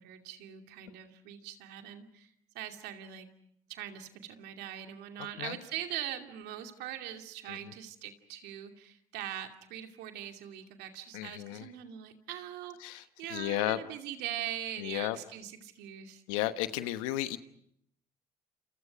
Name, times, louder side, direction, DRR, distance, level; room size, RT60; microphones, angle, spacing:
voice 1, 0.0-3.3 3.7-16.2, right 11 dB, 75° right, 5 dB, 2.6 m, -42 dB
voice 2, 11.1-11.7 12.8-13.8 14.8-15.2 16.3-17.4, left 15 dB, 90° left, 11 dB, 1.2 m, -34 dB
29.0 x 28.0 x 5.2 m, 0.69 s
hypercardioid pair, 60°, 17 cm